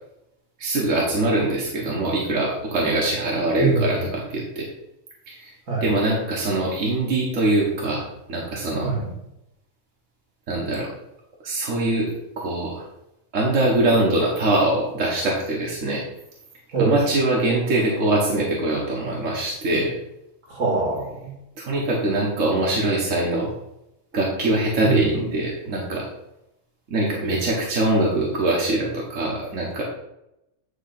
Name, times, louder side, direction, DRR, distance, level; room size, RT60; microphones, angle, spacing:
voice 1, 0.6-4.7 5.3-5.5 5.8-8.9 10.5-10.9 11.4-12.1 12.4-12.8 13.3-16.0 16.8-19.9 21.6-23.5 24.1-26.1 26.9-29.8, right 2 dB, 65° right, -3 dB, 1.7 m, -23 dB
voice 2, 3.6-4.0 5.7-5.9 8.8-9.1 16.7-17.0 20.5-21.3 24.8-25.1, right 3 dB, 85° right, -1 dB, 2.6 m, -23 dB
9.8 x 3.3 x 5.9 m, 0.85 s
omnidirectional pair, 1.4 m